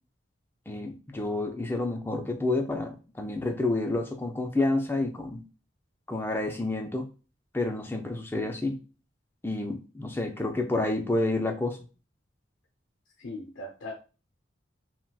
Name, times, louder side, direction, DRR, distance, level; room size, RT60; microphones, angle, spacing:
voice 1, 0.7-5.4 6.1-7.1 7.5-8.8 9.4-11.8, left 2 dB, 10° left, 4 dB, 0.4 m, -29 dB
voice 2, 13.2-13.9, left 1 dB, 85° left, 1 dB, 0.6 m, -39 dB
4.0 x 2.1 x 2.2 m, 0.34 s
head